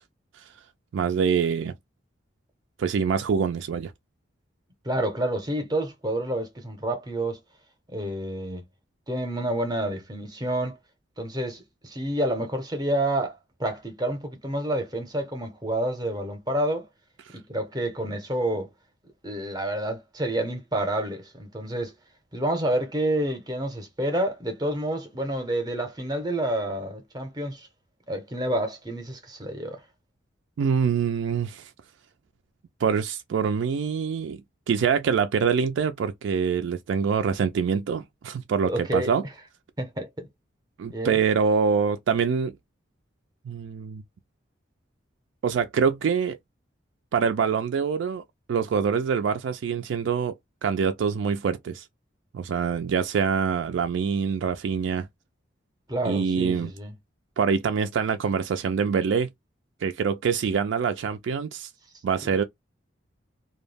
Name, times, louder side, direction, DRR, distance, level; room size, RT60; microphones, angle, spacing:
voice 1, 0.9-1.7 2.8-3.9 30.6-31.7 32.8-34.4 34.7-39.2 40.8-42.5 43.5-44.0 45.4-46.4 47.1-48.2 48.5-50.4 50.6-51.9 52.3-55.1 56.0-56.7 57.4-59.3 59.8-61.7 62.0-62.4, right 6 dB, 70° right, 0.3 m, -25 dB
voice 2, 4.8-7.4 7.9-8.6 9.1-10.8 11.2-16.9 17.3-18.7 19.2-21.9 22.3-27.7 28.1-29.8 38.7-39.1 39.8-40.3 40.9-41.2 55.9-56.9, right 1 dB, 20° right, 0.6 m, -29 dB
2.3 x 2.0 x 3.2 m
head